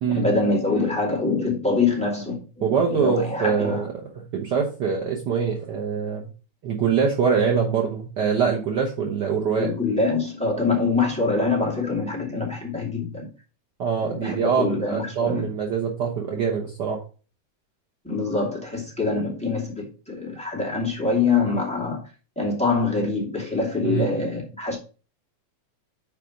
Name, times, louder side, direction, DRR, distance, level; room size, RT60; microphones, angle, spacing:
voice 1, 0.1-3.8 9.6-13.3 14.0-15.5 18.0-22.0 22.4-24.8, left 3 dB, ahead, 2.0 m, -25 dB
voice 2, 2.6-6.3 6.6-9.7 13.8-17.0 23.8-24.2, right 6 dB, 75° right, 0.9 m, -24 dB
6.6 x 5.0 x 5.1 m
omnidirectional pair, 3.5 m